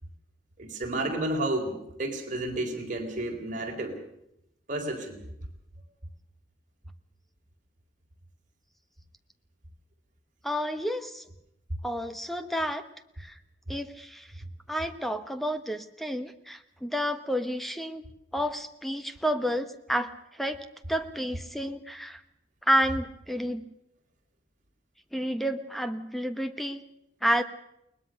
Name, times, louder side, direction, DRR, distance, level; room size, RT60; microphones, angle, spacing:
voice 1, 0.6-4.0 4.7-5.2, right 1 dB, 45° right, 2 dB, 4.2 m, -31 dB
voice 2, 10.4-11.2 11.8-12.8 13.2-13.3 13.7-14.3 14.7-18.0 18.3-20.1 20.4-20.6 20.9-22.2 22.7-23.6 25.1-26.8 27.2-27.4, equal, ahead, 9 dB, 1.2 m, -30 dB
21.5 x 20.0 x 6.5 m, 0.81 s
head